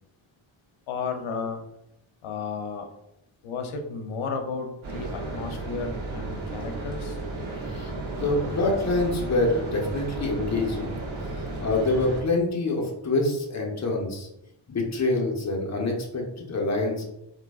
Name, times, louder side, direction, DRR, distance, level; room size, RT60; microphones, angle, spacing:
voice 1, 0.9-1.6 2.2-2.9 3.4-7.2, left 5 dB, 80° left, 5 dB, 0.7 m, -33 dB
sound 1, 4.8-12.2, right 2 dB, 75° right, 1.1 m, -34 dB
voice 2, 7.6-10.9 11.2-14.3 14.7-17.1, left 2 dB, 35° left, -1 dB, 0.9 m, -26 dB
3.7 x 2.7 x 2.3 m, 0.85 s
cardioid pair, 90°, 48 cm